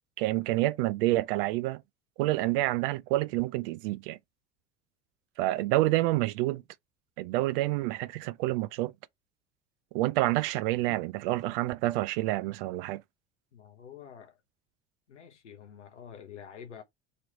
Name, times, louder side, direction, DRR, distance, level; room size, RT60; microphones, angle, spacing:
voice 1, 0.2-1.8 2.2-4.2 5.4-6.6 7.2-8.9 9.9-13.0, right 17 dB, 55° right, 0.5 m, -28 dB
voice 2, 13.5-14.4 15.1-16.8, left 8 dB, 85° left, 0.7 m, -48 dB
3.1 x 3.0 x 4.0 m
figure-of-eight pair, 70°, 35 cm